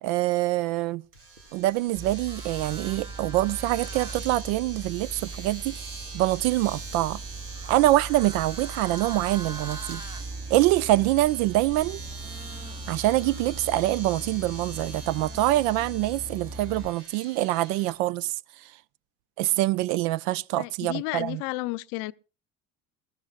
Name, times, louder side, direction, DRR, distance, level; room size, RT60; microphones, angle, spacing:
voice 1, 0.0-1.0 1.5-5.9 6.1-7.2 7.6-10.0 10.5-12.0 12.9-18.3 19.4-21.4, right 16 dB, 65° right, 0.6 m, -25 dB
Domestic sounds home sounds, 1.1-18.0, right 3 dB, 90° right, 2.3 m, -43 dB
Livestock farm animals working animals, 2.0-16.9, right 3 dB, 10° right, 0.6 m, -39 dB
voice 2, 20.6-22.1, left 21 dB, 60° left, 0.7 m, -32 dB
21.5 x 13.5 x 2.4 m
hypercardioid pair, 65°, 44 cm